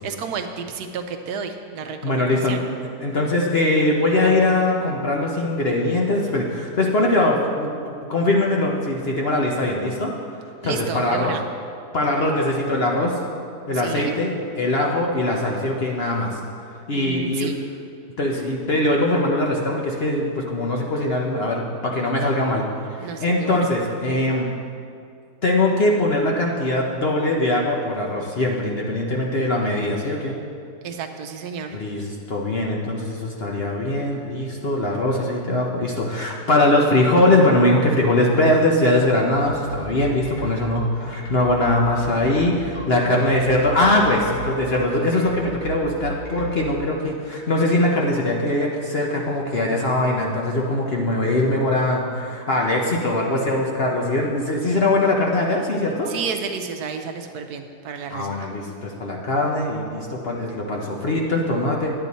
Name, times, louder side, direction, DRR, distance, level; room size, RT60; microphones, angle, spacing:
voice 1, 0.0-2.6 10.6-11.4 13.7-14.1 16.9-17.6 23.0-23.7 30.8-31.8 42.9-43.3 56.1-58.5, right 6 dB, 75° right, 5 dB, 1.1 m, -31 dB
voice 2, 2.0-2.6 3.0-10.1 10.6-11.3 11.9-13.2 13.7-16.4 16.9-17.5 18.2-22.6 23.0-24.5 25.4-30.3 31.7-56.1 58.1-61.9, left 1 dB, 45° left, -1 dB, 0.9 m, -21 dB
sound 1, 39.3-46.5, right 3 dB, 75° left, 2.5 m, -32 dB
10.0 x 9.0 x 4.1 m, 2.3 s
omnidirectional pair, 1.8 m